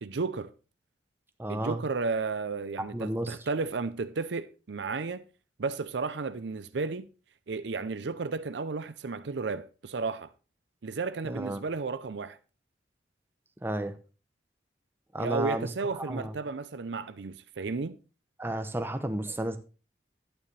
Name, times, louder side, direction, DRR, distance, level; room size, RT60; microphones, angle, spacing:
voice 1, 0.0-0.5 1.5-5.2 5.6-7.1 7.5-10.3 10.8-12.4 15.2-18.0, right 4 dB, 70° right, 0.6 m, -33 dB
voice 2, 1.4-1.8 2.8-3.4 11.2-11.6 13.6-14.0 15.1-15.7 16.0-16.3 18.4-19.6, right 1 dB, 10° right, 0.8 m, -32 dB
11.5 x 9.1 x 3.3 m
head